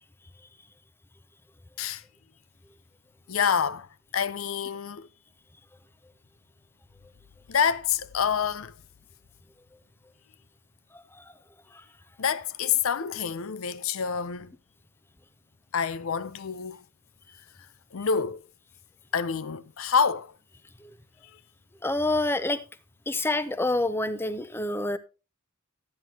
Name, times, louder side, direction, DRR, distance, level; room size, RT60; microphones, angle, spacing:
voice 1, 3.3-3.9 4.1-5.1 7.5-8.7 12.2-14.5 15.7-16.8 17.9-18.4 19.1-20.3, left 7 dB, 85° left, 0.6 m, -27 dB
voice 2, 21.8-22.6 23.1-25.0, left 2 dB, 10° left, 0.6 m, -27 dB
13.0 x 9.3 x 2.8 m
head